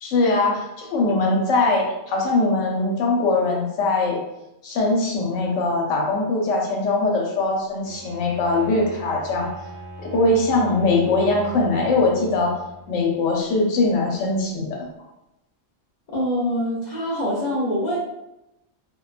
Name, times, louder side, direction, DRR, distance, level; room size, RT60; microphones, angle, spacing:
voice 1, 0.0-4.2 4.6-9.5 10.0-12.6 12.9-14.9, left 2 dB, 80° left, -1 dB, 1.0 m, -21 dB
Bowed string instrument, 7.8-13.2, right 1 dB, 25° right, 0.4 m, -39 dB
voice 2, 16.1-18.0, equal, 50° left, -5 dB, 0.5 m, -24 dB
2.5 x 2.1 x 2.3 m, 0.90 s
omnidirectional pair, 1.3 m